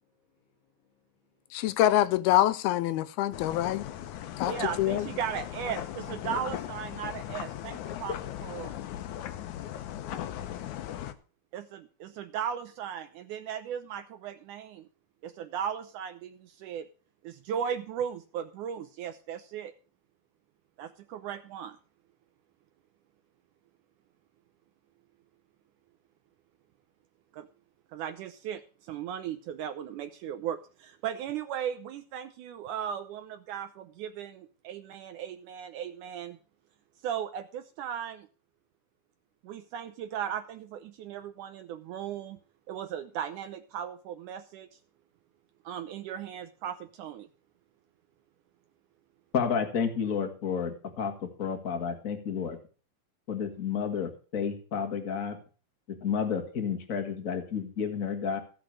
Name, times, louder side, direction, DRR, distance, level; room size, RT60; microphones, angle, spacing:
voice 1, 1.5-3.9 4.4-5.1, left 13 dB, 85° left, 2.7 m, -25 dB
sound 1, 3.3-11.1, left 11 dB, 70° left, 1.9 m, -38 dB
voice 2, 4.4-8.7 11.5-14.9 15.2-16.9 17.2-19.7 20.8-21.8 27.3-27.5 27.9-36.4 37.0-38.3 39.4-42.4 42.7-44.7 45.6-47.3, right 9 dB, 80° right, 1.8 m, -37 dB
voice 3, 49.3-52.6 53.3-55.4 55.9-58.4, left 6 dB, 45° left, 1.1 m, -31 dB
15.5 x 6.2 x 6.4 m
omnidirectional pair, 4.4 m